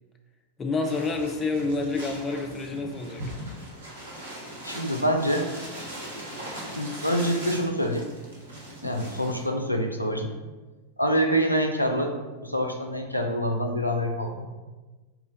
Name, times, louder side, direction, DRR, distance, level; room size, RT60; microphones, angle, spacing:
voice 1, 0.6-3.3, left 3 dB, 20° left, 3 dB, 0.4 m, -28 dB
sound 1, 0.8-9.5, right 1 dB, 70° right, 0.8 m, -40 dB
voice 2, 4.6-5.5 6.8-8.1 8.8-10.3 11.0-12.1 12.4-14.5, equal, 90° left, 3 dB, 0.3 m, -26 dB
4.3 x 2.2 x 3.8 m, 1.2 s
figure-of-eight pair, 90°, 0 cm